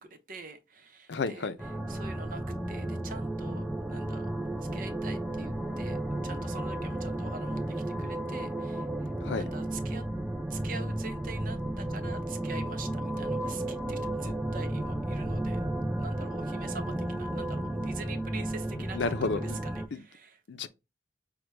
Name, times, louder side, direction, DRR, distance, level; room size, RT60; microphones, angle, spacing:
voice 1, 0.0-4.3 4.7-6.0 6.2-10.0 10.5-15.6 16.0-20.4, right 4 dB, 50° right, 0.7 m, -45 dB
voice 2, 1.1-1.6 9.2-9.5 18.9-19.6 19.9-20.0 20.5-20.7, left 4 dB, 90° left, 0.5 m, -31 dB
sound 1, 1.6-19.9, right 1 dB, 5° right, 0.3 m, -33 dB
6.0 x 2.2 x 3.2 m
head